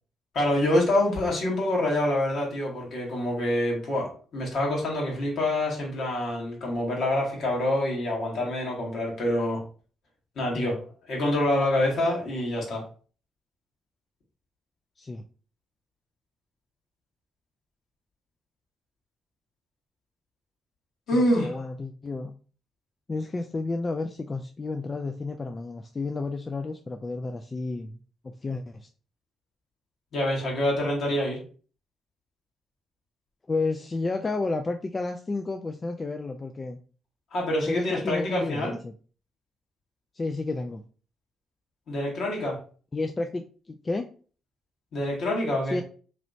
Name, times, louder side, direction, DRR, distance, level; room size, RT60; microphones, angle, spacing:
voice 1, 0.3-9.6 10.3-10.8 11.1-12.8 21.1-21.5 30.1-31.4 37.3-38.8 41.9-42.6 44.9-45.8, left 1 dB, 65° left, -2 dB, 1.5 m, -26 dB
voice 2, 21.1-22.4 23.1-28.0 28.2-28.9 33.5-36.8 37.7-38.9 40.1-40.8 42.9-44.1 45.7-45.8, left 3 dB, 35° left, 5 dB, 0.3 m, -31 dB
3.1 x 3.0 x 2.5 m, 0.40 s
hypercardioid pair, 50°, 0 cm